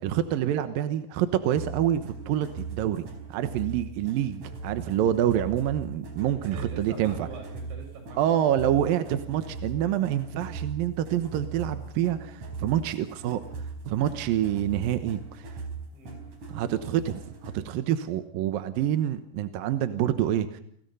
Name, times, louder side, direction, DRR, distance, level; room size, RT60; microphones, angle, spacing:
voice 1, 0.0-3.0 3.3-7.3 8.2-13.4 13.8-15.5 16.5-20.6, right 11 dB, 70° right, 10 dB, 2.4 m, -27 dB
sound 1, 1.6-17.7, right 4 dB, 45° right, 5.7 m, -39 dB
voice 2, 6.3-8.4 15.9-16.6, right 2 dB, 90° right, 4 dB, 8.7 m, -44 dB
29.5 x 23.0 x 5.5 m, 0.64 s
omnidirectional pair, 5.0 m